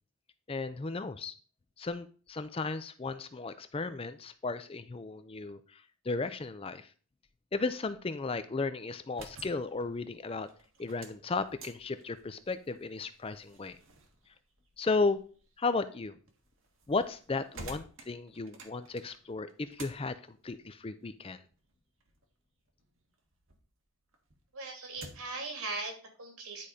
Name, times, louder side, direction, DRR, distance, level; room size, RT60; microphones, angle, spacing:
voice 1, 0.5-1.3 1.8-6.9 7.5-10.5 10.8-13.8 14.8-15.2 15.6-16.1 16.9-21.4, left 3 dB, 25° left, 12 dB, 0.4 m, -34 dB
sound 1, 9.0-23.7 24.1-25.4, right 2 dB, 65° right, 1.5 m, -53 dB
voice 2, 24.5-26.7, right 3 dB, 90° right, 4 dB, 2.5 m, -39 dB
10.0 x 4.2 x 4.9 m, 0.39 s
head